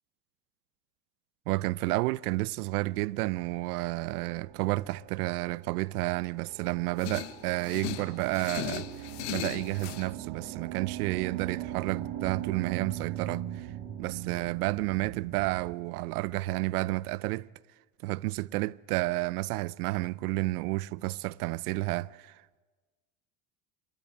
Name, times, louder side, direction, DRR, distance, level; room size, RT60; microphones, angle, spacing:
voice 1, 1.5-8.9 9.3-13.7 14.0-17.5 18.0-22.6, right 20 dB, 90° right, 0.6 m, -31 dB
sound 1, 4.0-15.7, right 12 dB, 55° right, 3.0 m, -41 dB
sound 2, 7.0-10.1, left 15 dB, 85° left, 1.0 m, -38 dB
26.0 x 13.0 x 9.4 m
supercardioid pair, 95°, 44 cm